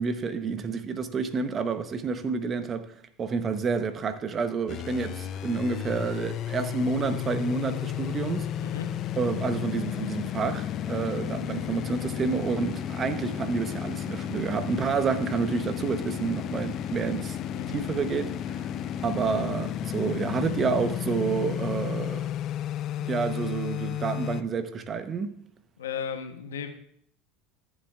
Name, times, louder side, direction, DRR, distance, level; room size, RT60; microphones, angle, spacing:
voice 1, 0.0-2.9 3.2-8.5 9.2-17.4 17.7-18.7 19.0-22.3 23.0-25.4, right 5 dB, 35° right, 0.9 m, -29 dB
sound 1, 4.7-24.4, left 10 dB, 50° left, 0.5 m, -33 dB
voice 2, 17.5-17.8 18.1-18.3 25.8-26.7, left 7 dB, 85° left, 0.9 m, -35 dB
14.5 x 7.4 x 2.4 m
hypercardioid pair, 85°, 0 cm